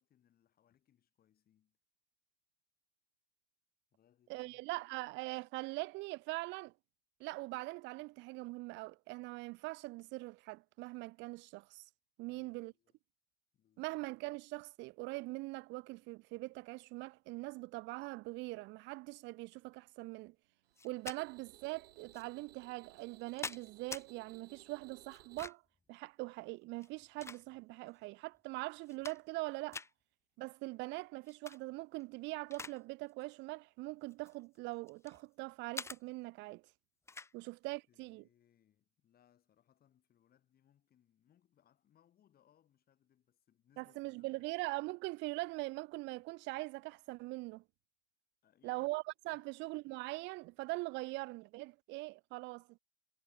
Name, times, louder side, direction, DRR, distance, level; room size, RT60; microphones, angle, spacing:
voice 1, 0.0-1.8 3.9-4.7 12.3-13.0 13.5-13.9 37.3-37.5 37.9-44.5 48.4-48.9 49.3-49.5, left 10 dB, 30° left, 6.3 m, -72 dB
voice 2, 4.3-6.7 7.2-11.8 12.2-12.7 13.8-20.3 20.8-25.6 25.9-29.8 30.4-36.6 37.3-38.2 43.8-47.6 48.6-52.8, right 23 dB, 40° right, 0.6 m, -42 dB
sound 1, 20.6-25.5, right 12 dB, 80° right, 2.8 m, -61 dB
sound 2, 20.8-21.2 22.1-22.2 23.0-24.1 25.1-25.8 26.7-27.8 28.3-28.4 28.8-29.4 29.7-29.9 31.3-31.6 32.0-32.8 33.1-33.3 34.1-35.2 35.7-36.0 37.1-37.3, left 4 dB, 10° left, 0.8 m, -46 dB
hypercardioid pair, 110°, 30 cm